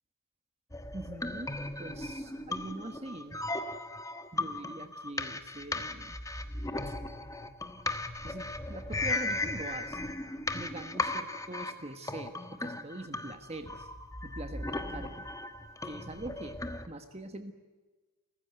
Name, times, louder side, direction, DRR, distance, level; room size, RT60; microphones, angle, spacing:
sound 1, 0.7-16.9, left 2 dB, 15° left, 1.3 m, -37 dB
voice 1, 0.9-1.5 1.8-3.4 4.3-6.2 6.9-7.0 8.2-10.0 10.5-13.9 14.2-15.3 15.8-16.6 16.9-17.5, right 2 dB, 30° right, 7 dB, 1.4 m, -43 dB
29.0 x 15.5 x 9.2 m, 1.3 s
head